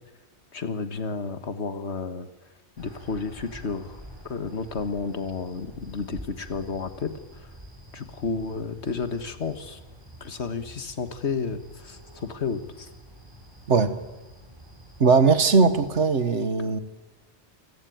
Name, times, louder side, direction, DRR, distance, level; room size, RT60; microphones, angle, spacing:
voice 1, 0.5-2.3 2.8-4.0 4.2-7.5 7.9-9.8 10.2-12.9, left 4 dB, 70° left, 9 dB, 1.8 m, -32 dB
sound 1, 2.8-16.0, right 1 dB, 20° right, 5.9 m, -47 dB
voice 2, 15.0-16.8, right 4 dB, 80° right, 10 dB, 1.8 m, -19 dB
28.0 x 16.5 x 9.3 m, 1.2 s
omnidirectional pair, 1.2 m